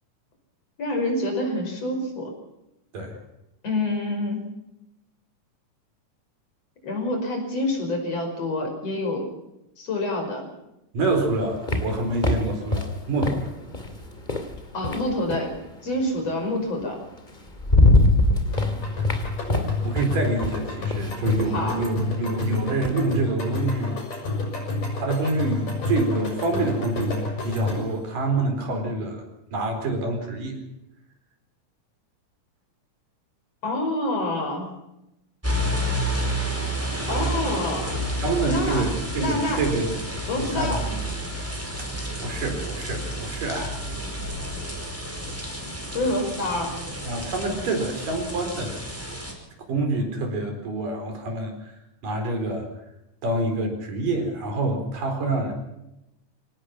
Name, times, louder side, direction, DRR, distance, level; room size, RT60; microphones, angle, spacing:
voice 1, 0.8-2.3 3.6-4.4 6.8-9.3 9.8-10.5 14.7-15.6 15.8-17.0 21.5-21.8 33.6-34.7 37.1-37.9 38.4-38.9 39.2-39.6 40.3-40.9 45.9-46.8, left 1 dB, 50° left, 3 dB, 6.5 m, -27 dB
voice 2, 10.9-13.4 19.8-24.0 25.0-29.2 29.5-30.6 38.2-41.0 41.8-41.9 42.2-43.8 47.0-48.8 49.7-51.8 52.0-52.7 53.2-55.5, right 2 dB, 75° right, 4 dB, 6.1 m, -27 dB
sound 1, 11.0-15.6 16.8-16.9 17.3-23.0, left 2 dB, 15° left, 2.3 m, -24 dB
sound 2, 18.5-28.0, left 2 dB, 75° left, 8.4 m, -29 dB
sound 3, 35.4-49.3, right 1 dB, 5° right, 4.9 m, -30 dB
25.5 x 18.5 x 5.9 m, 0.88 s
omnidirectional pair, 3.8 m